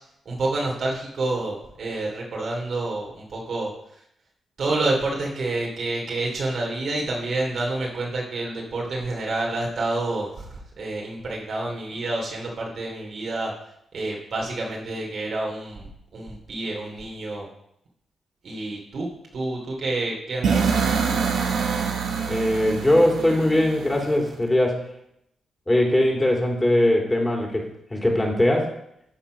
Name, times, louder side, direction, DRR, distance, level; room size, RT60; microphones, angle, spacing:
voice 1, 0.2-3.7 4.6-13.5 13.9-15.9 16.1-17.5 18.4-19.1 19.3-20.9, right 2 dB, 60° right, -1 dB, 2.9 m, -28 dB
sound 1, 20.4-24.3, right 5 dB, 80° right, 1.2 m, -25 dB
voice 2, 22.3-24.8 25.7-28.7, left 1 dB, 20° left, 0 dB, 2.8 m, -21 dB
13.0 x 4.4 x 5.1 m, 0.76 s
supercardioid pair, 60°, 0 cm